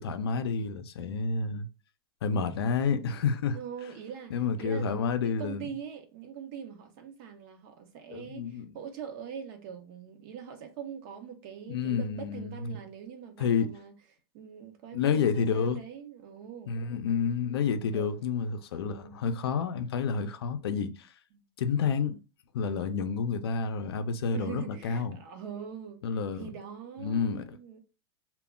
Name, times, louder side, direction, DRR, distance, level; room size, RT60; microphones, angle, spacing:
voice 1, 0.0-1.7 2.2-3.6 4.3-5.7 8.1-8.7 11.7-12.8 13.4-13.7 14.9-15.8 16.7-21.1 21.6-22.2 22.5-25.2 26.0-26.5 27.0-27.4, left 6 dB, 90° left, 0.4 m, -29 dB
voice 2, 3.5-13.9 14.3-16.7 17.8-18.3 18.8-19.2 21.3-21.4 24.3-26.0 26.3-27.8, right 8 dB, 50° right, 0.7 m, -43 dB
2.2 x 2.1 x 3.5 m
supercardioid pair, 135°, 13 cm